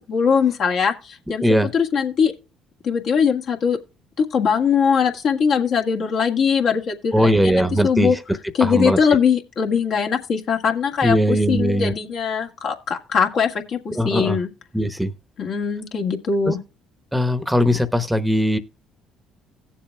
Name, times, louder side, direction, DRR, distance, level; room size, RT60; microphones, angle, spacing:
voice 1, 0.1-1.4 1.7-2.3 2.8-3.8 4.2-8.2 8.5-14.5 15.4-16.6, left 6 dB, 60° left, 1.7 m, -21 dB
voice 2, 1.4-1.7 7.1-8.2 8.6-9.0 11.0-11.9 13.9-14.4 14.7-15.1 16.5-16.6 17.1-18.6, equal, 5° right, 1.0 m, -19 dB
17.5 x 7.3 x 2.3 m
hypercardioid pair, 60°, 0 cm